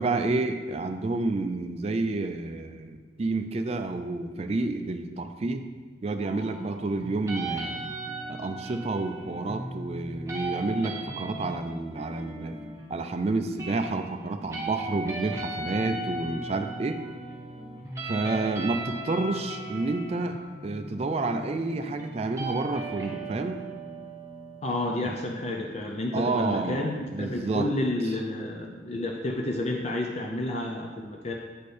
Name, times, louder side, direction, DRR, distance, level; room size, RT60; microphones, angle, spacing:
voice 1, 0.0-5.7 6.0-7.9 8.3-12.6 12.9-17.0 18.0-20.4 20.6-23.6 25.0-25.2 26.1-27.7, right 3 dB, 30° right, 6 dB, 0.3 m, -29 dB
sound 1, 6.2-26.2, right 2 dB, 15° right, 0.9 m, -38 dB
voice 2, 24.6-31.3, left 1 dB, 35° left, 0 dB, 0.5 m, -30 dB
9.3 x 4.3 x 3.3 m, 1.4 s
head